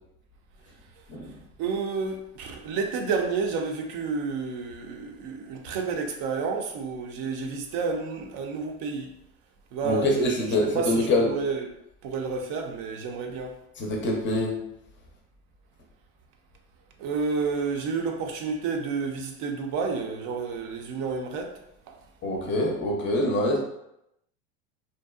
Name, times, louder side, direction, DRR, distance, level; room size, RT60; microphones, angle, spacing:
voice 1, 1.6-9.1 9.7-10.5 10.7-11.7 12.0-13.6 17.0-21.5 21.9-22.0, right 4 dB, 50° right, 0.6 m, -30 dB
voice 2, 9.8-11.3 13.8-14.6 22.2-23.6, left 1 dB, 25° left, 0.5 m, -25 dB
2.6 x 2.2 x 2.3 m
supercardioid pair, 110°, 45 cm